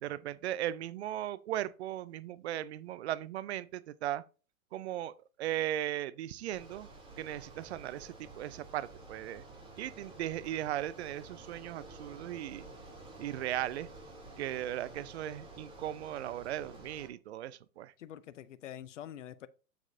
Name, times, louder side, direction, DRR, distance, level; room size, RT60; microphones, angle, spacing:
voice 1, 0.0-4.2 4.7-5.1 5.4-6.9 7.2-9.4 9.8-12.7 13.2-13.9 14.4-17.9, right 12 dB, 50° right, 0.6 m, -37 dB
Bicycle, 6.5-17.1, right 2 dB, 10° right, 2.9 m, -51 dB
voice 2, 18.0-19.5, left 11 dB, 60° left, 0.7 m, -46 dB
7.6 x 7.2 x 2.7 m
figure-of-eight pair, 115°, 41 cm